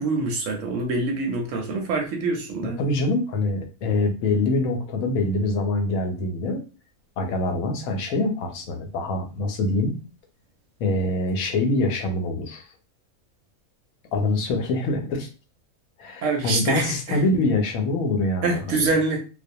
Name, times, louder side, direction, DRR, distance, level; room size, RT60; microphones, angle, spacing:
voice 1, 0.0-2.8 16.2-17.2 18.4-19.2, right 3 dB, 70° right, 3 dB, 0.8 m, -25 dB
voice 2, 2.6-6.6 7.2-10.0 10.8-12.6 14.1-15.3 16.0-18.9, left 2 dB, 75° left, 5 dB, 1.0 m, -24 dB
2.4 x 2.1 x 2.6 m, 0.33 s
omnidirectional pair, 1.5 m